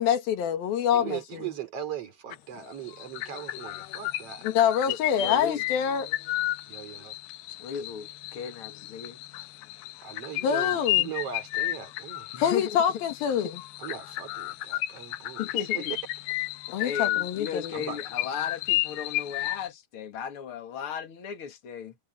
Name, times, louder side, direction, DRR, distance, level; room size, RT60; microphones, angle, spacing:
voice 1, 0.0-1.2 4.4-6.1 10.4-11.1 12.4-13.5 16.7-17.9, left 8 dB, 65° left, 3.5 m, -26 dB
voice 2, 0.9-4.5 6.7-7.2 10.0-12.4 13.8-15.9 17.7-18.0, right 9 dB, 40° right, 3.6 m, -39 dB
sound 1, 2.3-2.6 2.9-19.7, left 17 dB, 85° left, 2.7 m, -33 dB
voice 3, 4.9-5.6 7.6-9.2 12.3-13.0 15.4-15.9 16.8-22.0, left 7 dB, 40° left, 2.6 m, -36 dB
omnidirectional pair, 4.7 m